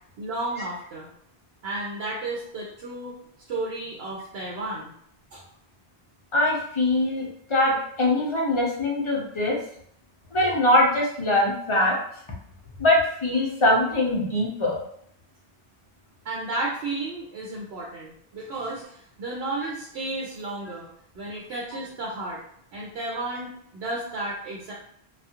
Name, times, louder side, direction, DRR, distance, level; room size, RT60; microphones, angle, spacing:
voice 1, 0.2-1.1 1.6-3.1 3.5-4.9 5.3-5.4 16.2-20.9 21.1-22.4 22.7-24.7, right 2 dB, 80° right, -4 dB, 0.9 m, -33 dB
voice 2, 6.3-9.6 10.3-12.0 12.8-14.8, left 1 dB, 35° left, -3 dB, 0.6 m, -22 dB
2.4 x 2.3 x 2.8 m, 0.66 s
omnidirectional pair, 1.1 m